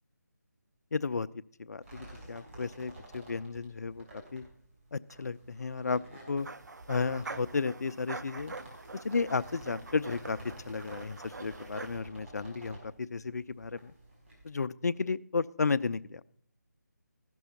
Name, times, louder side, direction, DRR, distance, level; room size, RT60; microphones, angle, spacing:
voice 1, 0.9-1.3 1.6-4.0 4.3-4.4 4.9-6.0 6.3-6.5 6.9-8.5 9.0-10.4 10.7-13.9 14.4-16.2, left 4 dB, 65° left, 14 dB, 0.5 m, -33 dB
sound 1, 1.8-14.5, right 1 dB, 45° right, 4.7 m, -51 dB
sound 2, 6.4-12.0, right 3 dB, 75° right, 0.6 m, -45 dB
15.0 x 6.2 x 5.7 m, 0.62 s
figure-of-eight pair, 160°, 10 cm